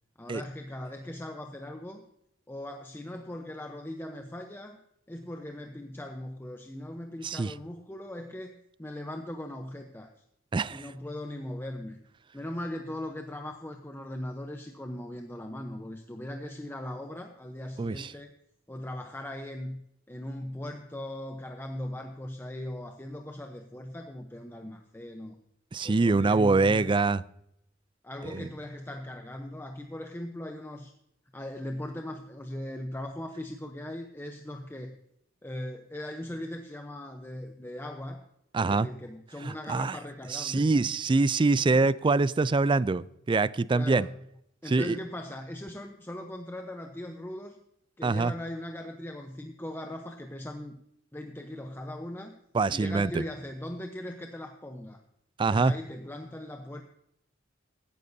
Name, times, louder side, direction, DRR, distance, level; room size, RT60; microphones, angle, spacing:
voice 1, 0.2-2.0 2.5-4.8 5.1-10.1 10.7-12.0 12.3-18.3 18.7-19.8 20.1-25.4 25.8-27.0 28.0-30.9 31.3-35.0 35.4-38.2 38.5-40.7 41.7-42.0 43.7-44.2 44.6-47.6 48.0-50.8 51.1-52.3 52.7-55.0 55.5-56.8, left 1 dB, 10° left, 4 dB, 0.8 m, -39 dB
voice 2, 10.5-10.8 17.8-18.1 25.7-27.2 28.2-28.5 38.5-38.9 39.4-40.0 40.3-44.1 44.7-45.0 48.0-48.3 52.5-53.2 55.4-55.7, right 3 dB, 25° right, 19 dB, 0.4 m, -24 dB
16.0 x 12.0 x 2.7 m, 0.77 s
head